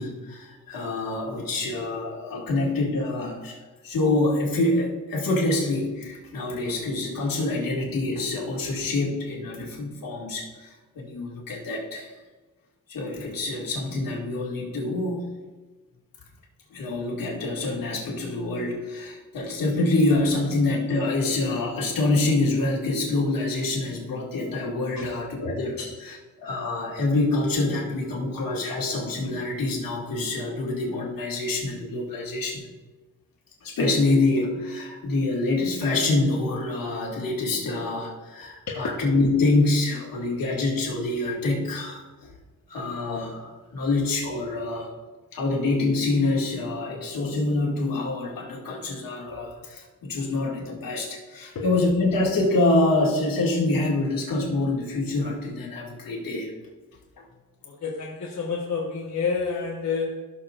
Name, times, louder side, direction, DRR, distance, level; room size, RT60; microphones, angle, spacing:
voice 1, 0.0-12.1 12.9-15.3 16.7-32.7 33.6-42.3 42.7-44.9 45.3-56.5, left 2 dB, 70° left, -2 dB, 2.3 m, -26 dB
voice 2, 57.6-60.2, left 5 dB, 50° left, -3 dB, 1.3 m, -29 dB
15.5 x 6.8 x 2.5 m, 1.3 s
cardioid pair, 105°, 35 cm